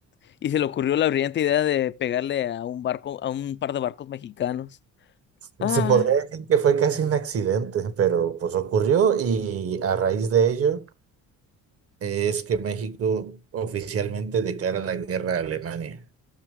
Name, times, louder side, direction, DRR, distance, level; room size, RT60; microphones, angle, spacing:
voice 1, 0.4-4.7 5.6-6.1, left 11 dB, 35° left, 0.5 m, -26 dB
voice 2, 5.6-10.8 12.0-16.0, right 7 dB, 45° right, 1.3 m, -24 dB
16.5 x 6.2 x 3.6 m
cardioid pair, 120°, 32 cm